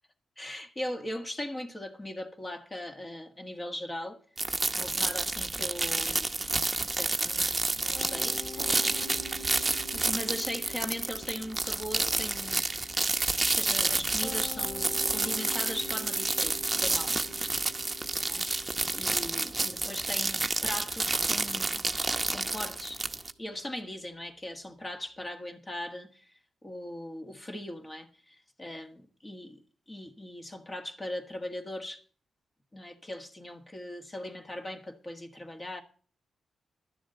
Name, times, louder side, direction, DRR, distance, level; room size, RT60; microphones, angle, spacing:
voice 1, 0.4-4.2 4.7-6.6 6.8-9.1 9.9-12.6 13.5-17.3 18.2-18.5 18.9-21.8 22.2-23.0 23.4-26.3 26.6-29.6 29.9-32.0 32.7-35.8, left 1 dB, 25° left, 1.6 m, -39 dB
sound 1, 4.4-23.3, right 2 dB, 20° right, 0.9 m, -30 dB
Piano, 7.9-25.1, left 2 dB, 85° left, 4.1 m, -47 dB
11.5 x 7.1 x 7.8 m
cardioid pair, 80°, 0 cm